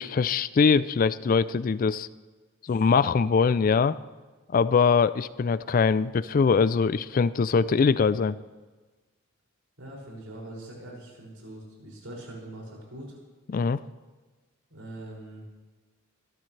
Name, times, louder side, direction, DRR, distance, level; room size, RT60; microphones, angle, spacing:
voice 1, 0.0-2.1 2.6-4.0 4.5-8.4 13.5-13.8, left 5 dB, 40° left, 16 dB, 0.3 m, -22 dB
voice 2, 9.8-13.2 14.7-15.5, right 1 dB, 70° right, -4 dB, 6.0 m, -42 dB
24.5 x 13.0 x 3.3 m, 1.3 s
head